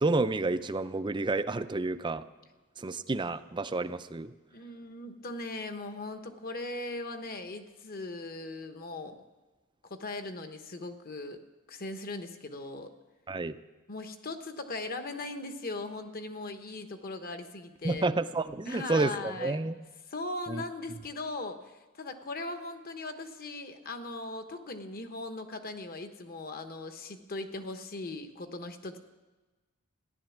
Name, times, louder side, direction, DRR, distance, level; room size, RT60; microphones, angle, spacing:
voice 1, 0.0-2.2 2.8-4.3 13.3-13.6 17.8-19.8 20.5-20.6, right 3 dB, 20° right, 11 dB, 0.5 m, -30 dB
voice 2, 4.5-9.2 9.8-11.4 11.7-12.9 13.9-18.1 18.6-19.6 20.1-29.0, left 2 dB, 40° left, 8 dB, 1.1 m, -39 dB
15.0 x 11.0 x 7.2 m, 1.2 s
head